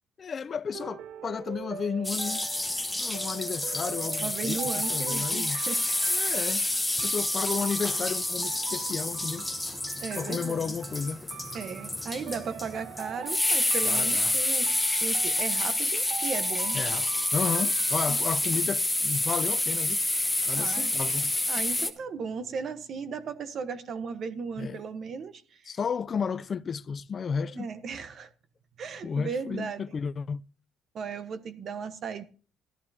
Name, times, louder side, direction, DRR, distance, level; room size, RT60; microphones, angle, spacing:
voice 1, 0.2-2.5 3.0-5.6 6.1-6.7 7.0-9.5 10.1-11.2 13.8-14.3 16.7-20.0 20.4-21.3 24.6-24.8 25.7-27.7 29.0-30.4, left 6 dB, 35° left, 0.4 m, -33 dB
sound 1, 0.7-18.1, right 9 dB, 75° right, 0.7 m, -44 dB
sound 2, 2.0-21.9, left 1 dB, 5° left, 1.1 m, -28 dB
voice 2, 4.2-5.9 10.0-10.8 11.5-16.8 18.1-18.2 20.5-21.0 21.5-25.8 27.5-28.3 28.8-29.8 30.9-32.2, right 5 dB, 50° right, 1.1 m, -36 dB
13.5 x 12.0 x 2.8 m
cardioid pair, 140°, 0 cm